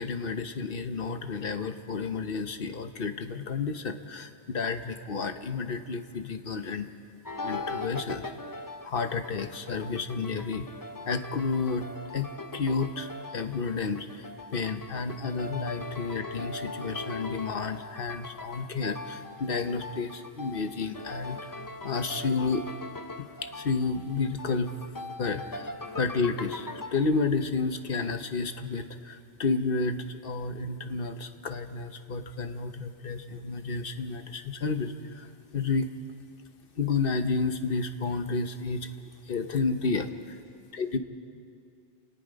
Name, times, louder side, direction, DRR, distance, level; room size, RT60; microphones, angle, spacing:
voice 1, 0.0-6.9 7.4-8.3 8.8-10.7 11.1-11.9 12.1-21.5 21.8-22.7 23.2-24.7 25.2-25.7 26.0-35.3 35.5-35.9 36.8-38.9 39.3-40.1 40.7-41.0, left 4 dB, 55° left, 9 dB, 1.1 m, -31 dB
sound 1, 7.2-27.0, left 2 dB, 20° left, 0.7 m, -40 dB
29.0 x 18.0 x 5.2 m, 2.4 s
omnidirectional pair, 1.1 m